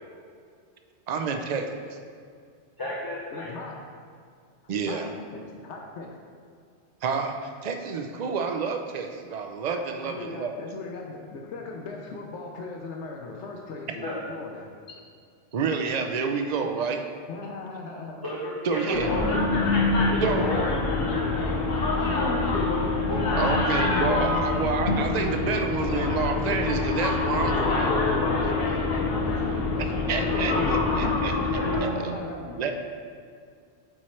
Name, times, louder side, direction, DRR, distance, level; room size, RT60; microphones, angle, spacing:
voice 1, 1.1-1.9 4.7-5.1 7.0-10.6 15.5-17.0 18.6-19.1 20.2-20.5 23.4-27.9 30.1-31.6 32.6-32.7, right 5 dB, 55° right, 5 dB, 0.5 m, -29 dB
voice 2, 2.8-3.5 14.0-14.2 18.2-19.6 20.1-20.7 21.1-21.3 22.2-22.3 23.1-23.5 23.9-24.2 31.6-32.0, left 1 dB, 20° left, -7 dB, 0.8 m, -32 dB
voice 3, 3.3-3.8 4.8-6.2 10.0-15.0 17.3-18.3 18.9-19.3 20.6-21.0 21.7-23.1 25.4-26.1 28.2-31.1 32.0-32.7, left 3 dB, 85° left, 1 dB, 1.0 m, -39 dB
sound 1, 18.9-31.8, left 3 dB, 60° left, 1.0 m, -25 dB
8.2 x 3.1 x 4.4 m, 2.2 s
omnidirectional pair, 1.2 m